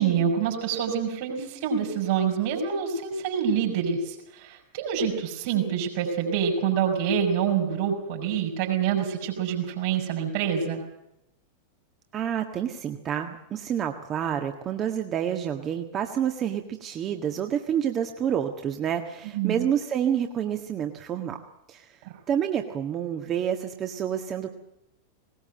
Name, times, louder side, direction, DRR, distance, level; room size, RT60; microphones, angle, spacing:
voice 1, 0.0-10.8 19.3-19.6, right 7 dB, 50° right, 1 dB, 5.4 m, -26 dB
voice 2, 12.1-21.4 21.7-22.0 22.3-24.5, right 9 dB, 30° right, 5 dB, 1.7 m, -28 dB
19.5 x 19.5 x 7.8 m, 0.84 s
figure-of-eight pair, 90°, 0 cm